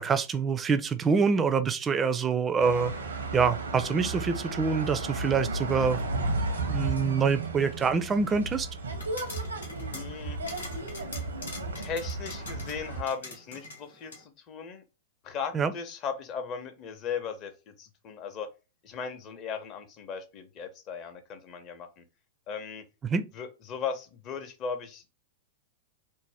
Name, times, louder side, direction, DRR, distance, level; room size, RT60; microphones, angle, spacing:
voice 1, 0.0-2.9 3.3-6.0 6.7-8.7 15.5-15.7 23.0-23.2, right 5 dB, 20° right, 0.4 m, -26 dB
sound 1, 2.6-13.0, right 2 dB, 80° right, 0.7 m, -34 dB
sound 2, 8.9-14.2, left 2 dB, 80° left, 0.9 m, -44 dB
voice 2, 9.9-10.4 11.8-14.8 15.2-18.5 18.8-22.0 22.5-22.8 23.3-25.1, left 6 dB, 35° left, 0.6 m, -37 dB
2.6 x 2.1 x 3.3 m
figure-of-eight pair, 100°, 0 cm